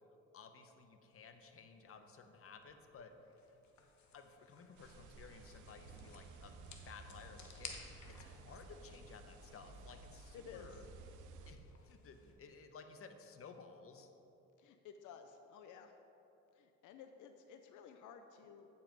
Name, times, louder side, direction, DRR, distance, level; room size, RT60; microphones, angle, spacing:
voice 1, 0.3-3.1 4.1-6.6 6.9-10.9 11.5-14.1, left 5 dB, 50° left, 7 dB, 0.8 m, -56 dB
sound 1, 1.0-12.3, left 5 dB, 70° left, 1.1 m, -59 dB
sound 2, 4.8-11.5, right 3 dB, 90° right, 0.7 m, -55 dB
voice 2, 10.3-10.9 14.6-15.9 16.5-18.7, left 7 dB, 85° left, 6 dB, 0.5 m, -55 dB
8.9 x 5.5 x 5.2 m, 2.9 s
cardioid pair, 90°, 30 cm